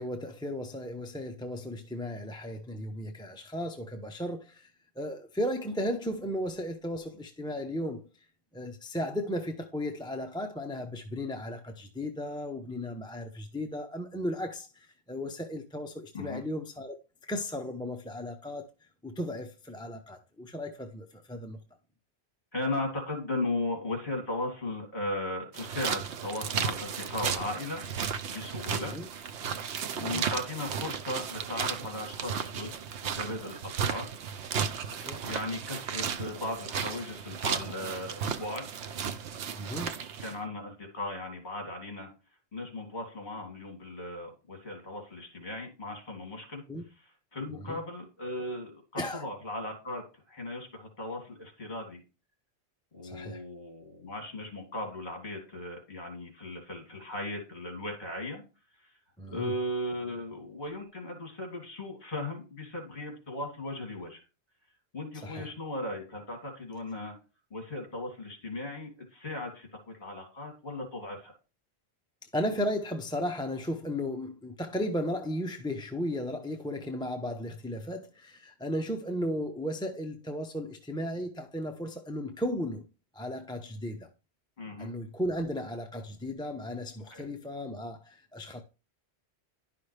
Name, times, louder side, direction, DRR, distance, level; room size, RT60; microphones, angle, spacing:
voice 1, 0.0-4.7 5.0-8.0 8.5-17.0 17.3-18.7 19.0-21.6 28.7-29.1 29.9-30.3 34.9-35.2 39.5-40.0 46.7-46.8 47.5-47.8 49.0-49.2 53.0-53.4 59.2-59.5 65.2-65.5 72.3-82.8 83.1-84.1 84.8-88.6, left 1 dB, 5° left, 0.6 m, -35 dB
voice 2, 22.5-27.9 28.3-28.9 29.3-29.5 29.9-32.7 33.0-34.1 35.2-38.8 40.2-42.1 42.5-46.6 47.0-52.0 52.9-58.4 58.8-58.9 59.3-64.2 64.9-67.1 67.5-71.3 84.6-84.9 87.1-87.2, left 1 dB, 40° left, 2.7 m, -37 dB
sound 1, 25.5-40.4, right 7 dB, 90° right, 1.0 m, -34 dB
11.0 x 5.8 x 3.3 m
omnidirectional pair, 1.1 m